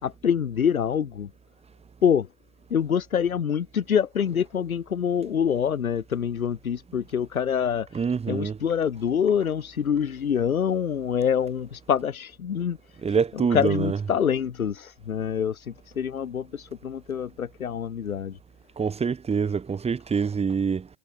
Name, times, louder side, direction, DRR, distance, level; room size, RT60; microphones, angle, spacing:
voice 1, 0.0-1.3 2.0-2.3 2.7-12.8 13.3-18.4, left 8 dB, 80° left, 6.1 m, -26 dB
voice 2, 7.9-8.6 13.0-14.1 18.8-20.9, right 6 dB, 15° right, 6.5 m, -25 dB
hypercardioid pair, 120°, 42 cm